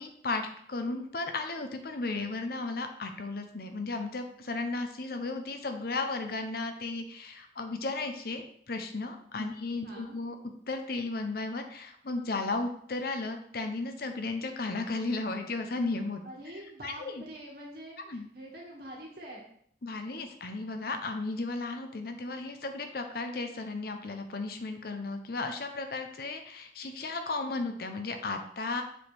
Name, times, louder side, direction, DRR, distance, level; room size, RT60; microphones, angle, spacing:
voice 1, 0.0-10.4 10.7-16.2 16.8-17.2 18.1-18.3 19.8-28.8, left 3 dB, 55° left, 6 dB, 0.7 m, -34 dB
voice 2, 9.8-10.2 16.2-19.5, right 1 dB, 55° right, -2 dB, 2.0 m, -45 dB
6.9 x 4.8 x 3.5 m, 0.63 s
head